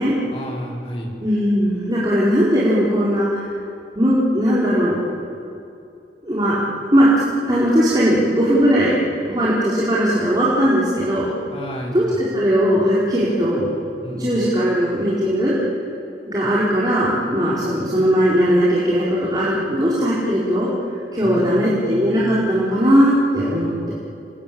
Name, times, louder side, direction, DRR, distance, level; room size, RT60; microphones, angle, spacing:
voice 1, 0.3-1.1 11.5-12.2 14.0-14.4 21.2-22.4, equal, 30° left, -2 dB, 4.4 m, -32 dB
voice 2, 1.2-3.4 3.9-5.0 6.2-6.6 6.9-7.1 7.4-8.9 9.3-11.3 11.9-12.0 12.3-13.7 14.1-15.5 16.3-20.7 21.1-23.9, equal, 25° right, -8 dB, 4.7 m, -18 dB
29.0 x 22.0 x 8.9 m, 2.6 s
head